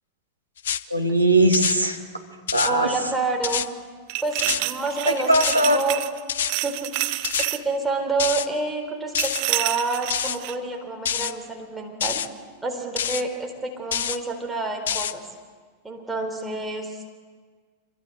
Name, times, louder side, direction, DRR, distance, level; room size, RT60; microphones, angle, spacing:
sound 1, 0.6-0.8 1.5-1.8 2.5-2.7 3.4-3.7 4.4-4.6 5.3-5.6 6.3-6.5 7.2-7.5 8.2-8.5 9.1-9.4 10.1-10.4 11.0-11.3 12.0-12.3 13.0-13.2 13.9-14.2 14.9-15.1, left 9 dB, 65° left, 0.9 m, -26 dB
voice 1, 0.9-2.0 2.5-2.9 5.1-5.8, right 1 dB, 90° right, 3 dB, 2.7 m, -19 dB
voice 2, 2.6-3.7 4.2-6.0 6.6-12.2 12.6-15.2 15.8-17.1, right 3 dB, 10° right, 2 dB, 4.2 m, -28 dB
sound 2, 4.1-6.2 6.5-7.6 9.2-10.5, right 19 dB, 45° right, 1.1 m, -28 dB
26.5 x 25.5 x 8.0 m, 1.6 s
figure-of-eight pair, 90°, 0 cm